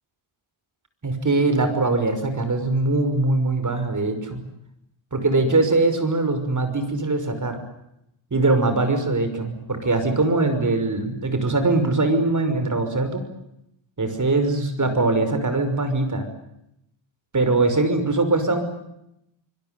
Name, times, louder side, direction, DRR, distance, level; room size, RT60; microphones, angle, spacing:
voice 1, 1.0-4.4 5.1-7.6 8.3-13.2 14.0-16.3 17.3-18.6, right 2 dB, 40° right, 8 dB, 5.8 m, -22 dB
25.5 x 22.0 x 9.4 m, 0.81 s
wide cardioid pair, 120°, 48 cm